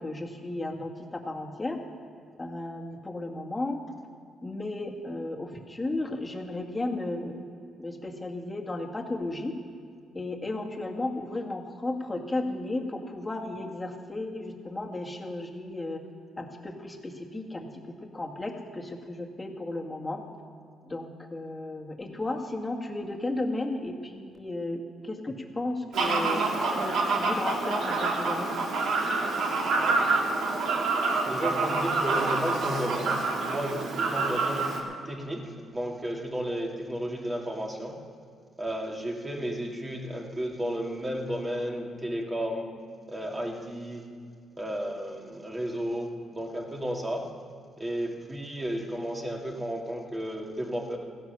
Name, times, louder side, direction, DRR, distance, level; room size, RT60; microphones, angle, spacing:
voice 1, 0.0-1.8 2.4-3.8 4.4-7.4 7.8-9.5 10.1-16.0 16.4-20.2 20.8-28.5, left 2 dB, 20° left, 2 dB, 1.9 m, -34 dB
Fowl, 25.9-34.8, right 3 dB, 75° right, 2.2 m, -27 dB
voice 2, 29.8-30.2 31.2-34.7 35.0-38.0 38.6-42.7 43.1-44.1 44.6-47.3 47.8-51.0, equal, 20° right, 0 dB, 2.4 m, -33 dB
16.0 x 10.5 x 6.9 m, 2.2 s
cardioid pair, 90°, 0 cm